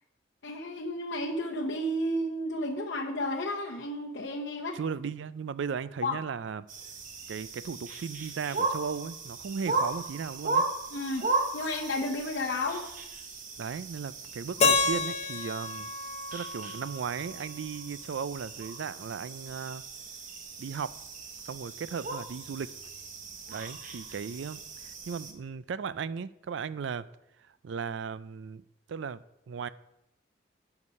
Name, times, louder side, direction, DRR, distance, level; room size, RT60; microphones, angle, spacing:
voice 1, 0.4-4.8 6.0-6.2 10.9-12.9, left 1 dB, 65° left, -1 dB, 0.9 m, -32 dB
voice 2, 4.7-6.6 7.3-10.7 13.6-15.9 16.3-19.8 20.6-20.9 21.5-22.7 23.5-27.0 27.6-29.7, right 6 dB, 70° right, 16 dB, 0.4 m, -36 dB
sound 1, 6.7-25.3, right 3 dB, 40° right, 1.0 m, -37 dB
Keyboard (musical), 14.6-17.6, left 4 dB, 35° left, 0.7 m, -29 dB
11.0 x 4.8 x 5.3 m, 0.86 s
head